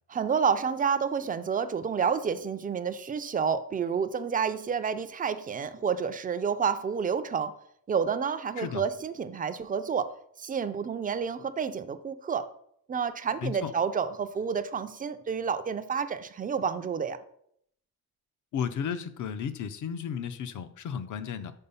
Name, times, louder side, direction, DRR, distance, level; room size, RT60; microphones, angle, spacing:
voice 1, 0.1-7.5 7.9-10.1 10.4-12.5 12.9-17.2, right 6 dB, 25° right, 10 dB, 0.4 m, -29 dB
voice 2, 18.5-21.5, left 7 dB, 55° left, 12 dB, 0.6 m, -33 dB
5.5 x 4.3 x 5.5 m, 0.69 s
cardioid pair, 120°, 37 cm